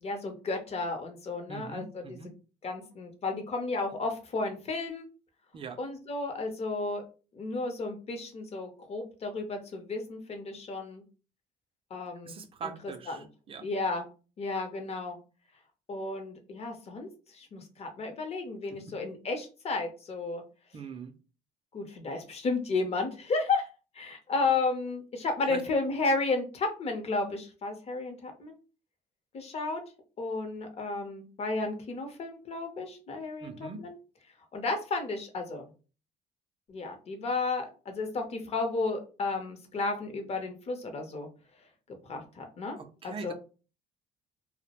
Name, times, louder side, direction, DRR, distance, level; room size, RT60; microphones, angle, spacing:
voice 1, 0.0-2.2 2.6-5.1 5.8-7.0 7.3-11.0 11.9-13.3 13.6-14.1 14.4-15.2 15.9-20.4 21.7-23.7 23.9-28.6 29.3-29.8 30.2-34.0 34.5-35.7 36.7-41.3 42.1-42.8 43.0-43.3, left 3 dB, 40° left, 5 dB, 0.6 m, -33 dB
voice 2, 1.5-2.3 5.5-5.8 12.2-13.7 18.7-18.9 20.7-21.1 25.5-25.6 33.4-33.8 42.8-43.3, right 5 dB, 30° right, 8 dB, 0.4 m, -42 dB
2.3 x 2.0 x 2.8 m, 0.35 s
cardioid pair, 110°, 17 cm